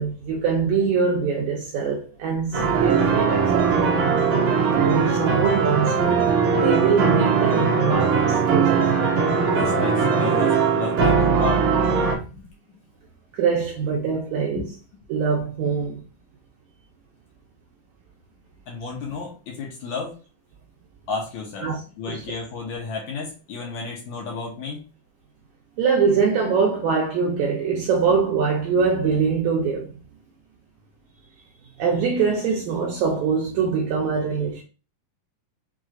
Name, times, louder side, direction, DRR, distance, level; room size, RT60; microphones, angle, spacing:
voice 1, 0.0-4.0 4.8-6.3 6.6-8.9 13.3-14.6 15.1-16.0 21.6-21.8 22.1-22.2 25.8-30.0 31.8-34.6, right 5 dB, 80° right, 1.7 m, -23 dB
sound 1, 2.5-12.2, right 5 dB, 60° right, 2.3 m, -20 dB
voice 2, 9.5-12.4 14.6-14.7 18.7-20.1 21.1-21.7 22.0-24.8, left 4 dB, 70° left, 2.1 m, -32 dB
6.2 x 3.0 x 2.4 m
omnidirectional pair, 4.1 m